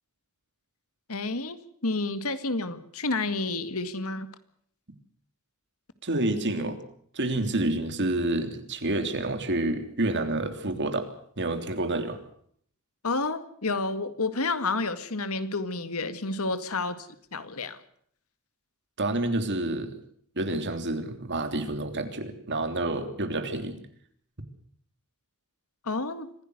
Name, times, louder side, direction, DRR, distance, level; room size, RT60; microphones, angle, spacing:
voice 1, 1.1-1.6 1.8-4.3 13.0-17.8 25.8-26.3, left 3 dB, 75° left, 11 dB, 2.0 m, -30 dB
voice 2, 6.0-6.8 7.1-11.1 11.4-12.2 19.0-19.9 20.3-23.8, right 2 dB, 55° right, 7 dB, 3.3 m, -28 dB
25.0 x 16.5 x 8.0 m, 0.64 s
head